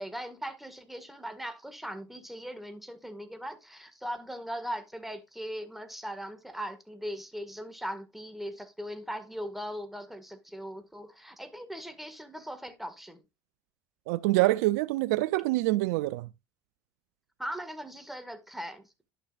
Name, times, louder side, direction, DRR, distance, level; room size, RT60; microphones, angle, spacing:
voice 1, 0.0-13.2 17.4-18.8, equal, ahead, 1.8 m, -39 dB
voice 2, 14.1-16.3, right 18 dB, 80° right, 0.4 m, -26 dB
11.0 x 6.4 x 2.5 m
hypercardioid pair, 65°, 9 cm